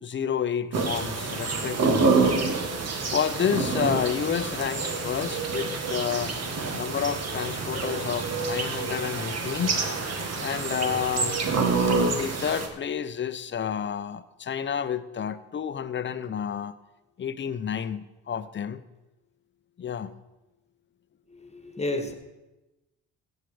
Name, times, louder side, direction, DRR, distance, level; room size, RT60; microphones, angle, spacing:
voice 1, 0.0-2.3 3.1-6.4 6.7-9.8 10.4-11.4 12.1-16.8 17.2-18.8 19.8-20.1, left 8 dB, 40° left, 0.8 m, -30 dB
sound 1, 0.7-12.7, right 4 dB, 55° right, 1.9 m, -27 dB
voice 2, 21.3-22.1, left 2 dB, 20° left, 1.6 m, -31 dB
16.0 x 7.7 x 5.0 m
cardioid pair, 90°, 30 cm